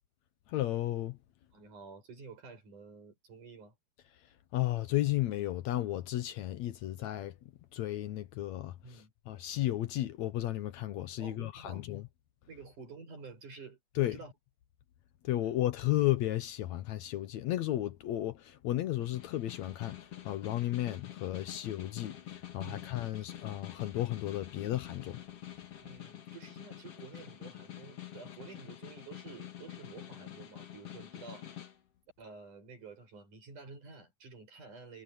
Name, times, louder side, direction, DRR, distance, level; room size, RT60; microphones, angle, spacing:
voice 1, 0.5-1.2 4.5-7.3 7.7-8.7 9.3-12.0 14.0-14.2 15.2-20.0 20.2-25.2, left 14 dB, 70° left, 2.0 m, -33 dB
voice 2, 1.5-3.8 8.8-9.1 11.2-11.9 12.5-14.3 22.6-22.9 23.2-23.3 25.8-31.5 32.2-35.0, right 4 dB, 75° right, 8.8 m, -50 dB
Snare drum, 19.0-31.7, left 11 dB, 50° left, 3.0 m, -47 dB
omnidirectional pair, 3.6 m